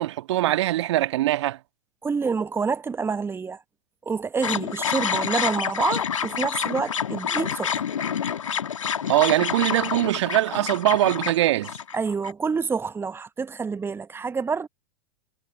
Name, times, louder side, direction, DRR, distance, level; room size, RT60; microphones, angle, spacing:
voice 1, 0.0-1.6 9.1-11.7, right 15 dB, 60° right, 1.5 m, -22 dB
voice 2, 2.0-3.6 4.1-7.9 11.9-14.7, right 5 dB, 15° right, 0.9 m, -27 dB
sound 1, 4.4-12.3, left 8 dB, 75° left, 1.7 m, -28 dB
figure-of-eight pair, 90°, 16 cm